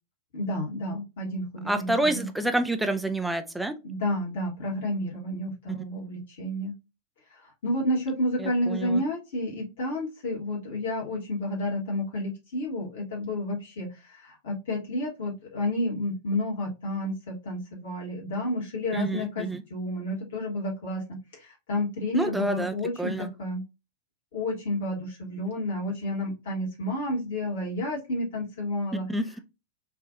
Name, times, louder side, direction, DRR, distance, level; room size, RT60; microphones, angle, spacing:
voice 1, 0.3-2.3 3.8-6.7 7.6-21.0 21.3-23.6 24.3-29.0, left 1 dB, 55° left, 1.3 m, -30 dB
voice 2, 1.7-3.8 5.7-5.8 8.4-9.0 18.9-19.6 22.1-23.3 29.1-29.4, right 2 dB, 5° right, 0.5 m, -28 dB
4.7 x 2.5 x 2.5 m
figure-of-eight pair, 90°, 0 cm